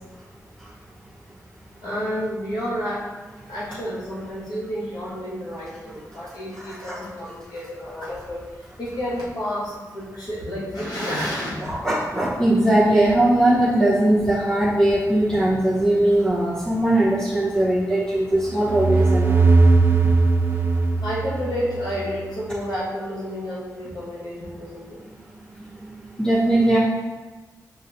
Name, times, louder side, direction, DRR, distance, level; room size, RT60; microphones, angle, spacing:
voice 1, 1.8-3.1 3.5-8.4 8.8-11.7 21.0-25.0, equal, 75° left, -8 dB, 1.5 m, -30 dB
voice 2, 6.5-7.0 11.7-19.4 19.7-19.8 25.7-25.9 26.2-26.8, right 1 dB, 10° left, -8 dB, 0.7 m, -20 dB
sound 1, 18.4-22.0, right 3 dB, 35° right, 0.4 m, -18 dB
5.4 x 3.1 x 2.6 m, 1.2 s
wide cardioid pair, 125°, 7 cm